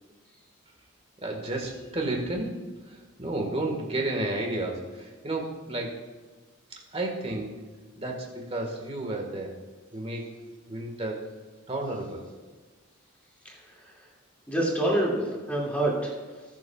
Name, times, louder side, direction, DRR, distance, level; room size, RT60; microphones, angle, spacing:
voice 1, 1.2-6.0 6.7-7.6 8.0-9.5 9.9-10.3 10.7-11.3 11.7-12.3, right 2 dB, 30° right, 1 dB, 1.7 m, -32 dB
voice 2, 13.4-14.1 14.5-16.4, right 1 dB, 5° left, -4 dB, 2.4 m, -28 dB
20.0 x 7.3 x 2.4 m, 1.3 s
head